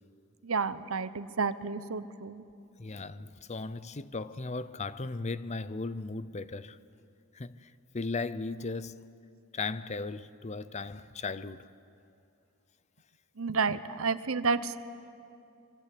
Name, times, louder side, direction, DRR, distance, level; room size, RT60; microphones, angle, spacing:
voice 1, 0.4-2.4 13.4-14.8, right 4 dB, 75° right, 0.9 m, -30 dB
voice 2, 2.8-6.8 7.3-9.0 9.5-11.6, left 3 dB, 35° left, 0.6 m, -37 dB
24.5 x 23.5 x 8.5 m
head